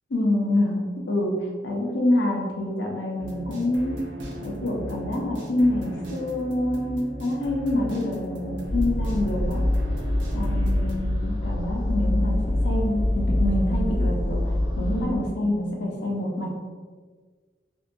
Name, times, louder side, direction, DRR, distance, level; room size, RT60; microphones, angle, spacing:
voice 1, 0.1-4.0 4.4-9.6 10.3-16.7, left 1 dB, 90° left, -1 dB, 0.6 m, -26 dB
sound 1, 3.2-10.9, right 1 dB, 80° right, 0.5 m, -36 dB
sound 2, 8.6-15.1, left 1 dB, 30° right, 0.5 m, -25 dB
2.7 x 2.2 x 2.5 m, 1.5 s
head